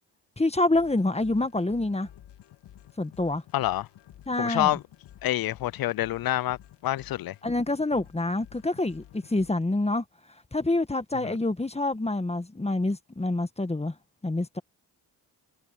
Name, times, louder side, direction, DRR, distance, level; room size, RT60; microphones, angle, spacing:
voice 1, 0.4-2.1 3.0-3.4 4.3-4.7 7.4-10.0 10.5-13.9 14.2-14.6, left 2 dB, 15° left, 1.5 m, -27 dB
sound 1, 0.7-9.5, left 12 dB, 80° left, 2.2 m, -52 dB
voice 2, 3.5-3.9 4.4-4.8 5.2-7.4 11.2-11.4, left 14 dB, 60° left, 0.5 m, -27 dB
cardioid pair, 70°, 41 cm